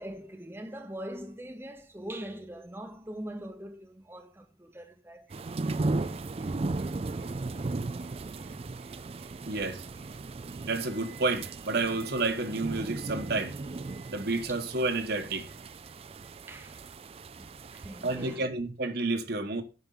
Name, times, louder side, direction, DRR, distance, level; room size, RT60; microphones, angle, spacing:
voice 1, 0.0-5.3 16.5-16.9 17.4-18.5, right 1 dB, 10° right, 0.8 m, -42 dB
sound 1, 5.3-18.4, right 3 dB, 30° right, 0.4 m, -36 dB
voice 2, 9.5-9.8 10.6-13.6 14.1-15.5 18.0-19.6, right 3 dB, 55° right, 1.2 m, -30 dB
8.1 x 6.1 x 5.5 m
head